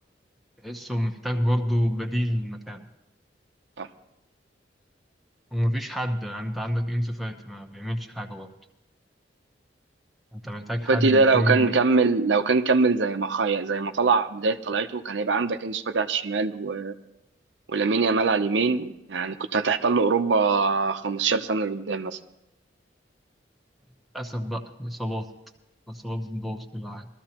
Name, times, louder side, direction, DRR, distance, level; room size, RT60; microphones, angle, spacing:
voice 1, 0.6-2.9 5.5-8.5 10.3-11.8 24.1-25.3 25.9-27.1, equal, ahead, 2 dB, 0.9 m, -28 dB
voice 2, 10.9-16.9 17.7-22.2, right 4 dB, 85° right, 8 dB, 0.7 m, -23 dB
21.5 x 13.5 x 2.9 m, 0.91 s
head